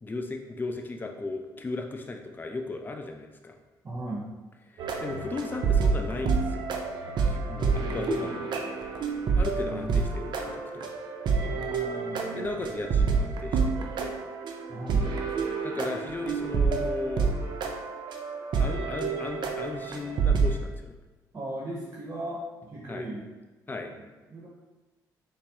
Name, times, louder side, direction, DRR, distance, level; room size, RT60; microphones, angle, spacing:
voice 1, 0.0-3.5 4.7-6.6 7.1-8.8 9.4-11.0 12.3-14.2 15.6-17.3 18.6-20.9 22.9-23.1 23.7-23.9, left 3 dB, 25° left, 4 dB, 0.4 m, -36 dB
voice 2, 3.8-4.3 7.5-8.4 9.5-10.0 11.4-12.5 14.7-15.1 21.3-23.3 23.9-24.5, right 1 dB, 40° right, -4 dB, 0.8 m, -38 dB
sound 1, 4.8-20.6, right 5 dB, 65° right, 0.5 m, -28 dB
4.1 x 2.0 x 3.5 m, 1.2 s
supercardioid pair, 60°, 8 cm